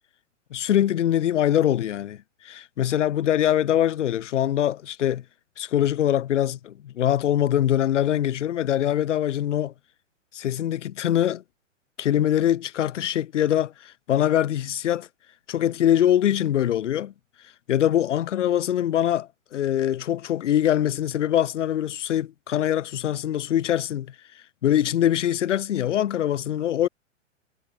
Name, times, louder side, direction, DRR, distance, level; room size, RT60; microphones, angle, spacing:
voice 1, 0.5-2.2 2.4-5.2 5.6-9.7 10.3-11.4 12.0-15.1 15.5-17.1 17.7-24.1 24.6-26.9, left 11 dB, 70° left, 1.2 m, -23 dB
hypercardioid pair, 140°, 38 cm